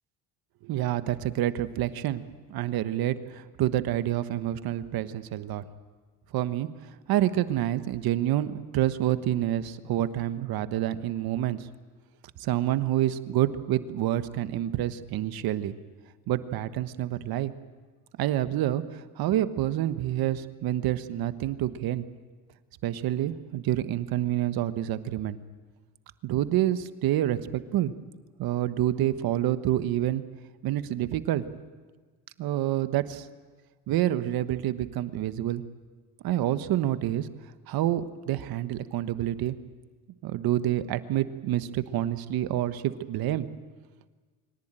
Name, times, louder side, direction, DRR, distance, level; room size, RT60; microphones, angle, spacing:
voice 1, 0.6-2.2 2.5-5.6 6.3-6.7 7.1-11.6 12.4-15.7 16.3-17.5 18.2-22.0 22.8-25.4 26.2-27.9 28.4-30.2 30.6-31.4 32.4-33.3 33.9-35.6 36.2-37.3 37.7-39.6 40.2-43.5, right 13 dB, 60° right, 12 dB, 1.3 m, -28 dB
24.0 x 17.5 x 9.0 m, 1.4 s
supercardioid pair, 100°, 40 cm